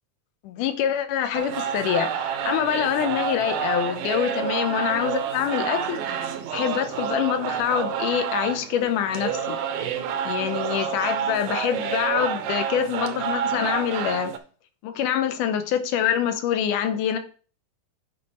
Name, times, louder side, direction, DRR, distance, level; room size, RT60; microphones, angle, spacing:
voice 1, 0.4-6.0 6.5-9.6 10.3-14.3 14.8-17.2, left 9 dB, 75° left, 2.1 m, -25 dB
sound 1, 1.3-14.4, right 8 dB, 70° right, 1.7 m, -29 dB
9.6 x 5.1 x 4.3 m
omnidirectional pair, 4.1 m